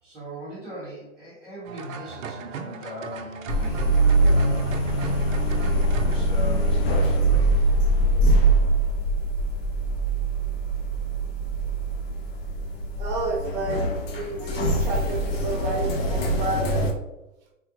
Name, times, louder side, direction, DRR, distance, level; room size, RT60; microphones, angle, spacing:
voice 1, 0.0-4.7 5.6-7.6, equal, ahead, -16 dB, 0.3 m, -40 dB
sound 1, 1.7-6.2, right 6 dB, 70° right, 0.5 m, -37 dB
sound 2, 3.5-16.9, right 2 dB, 50° left, 0.6 m, -23 dB
voice 2, 13.0-16.9, right 3 dB, 35° right, 1 dB, 0.7 m, -30 dB
3.5 x 2.0 x 2.9 m, 0.94 s
hypercardioid pair, 120°, 40 cm